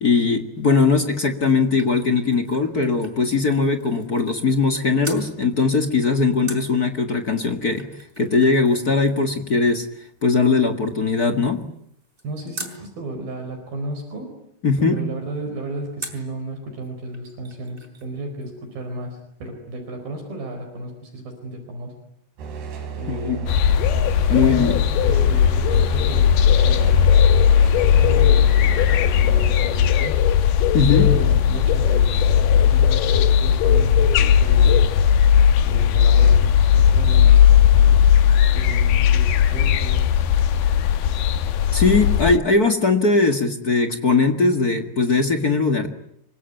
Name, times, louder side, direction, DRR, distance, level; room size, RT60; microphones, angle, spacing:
voice 1, 0.0-7.8 8.2-9.9 10.2-11.6 14.6-15.0 23.1-23.4 24.3-24.8 30.7-31.1 41.7-45.9, left 4 dB, 40° left, 6 dB, 1.3 m, -20 dB
sound 1, 1.2-4.7 5.0-5.3 6.5-12.8 16.0-16.3 16.8-16.9 17.1-18.1 18.4-18.5, right 1 dB, 15° right, 4.3 m, -42 dB
voice 2, 12.2-14.3 14.8-21.9 22.9-23.6 24.3-24.7 25.0-27.0 27.8-30.3 30.9-35.1 35.6-38.0 38.5-40.1, right 1 dB, 65° right, 5 dB, 6.3 m, -33 dB
sound 2, 22.4-29.5, right 7 dB, 85° right, 5.3 m, -33 dB
sound 3, 23.5-42.4, left 9 dB, 75° left, 3.1 m, -16 dB
26.5 x 24.0 x 9.2 m, 0.74 s
omnidirectional pair, 4.5 m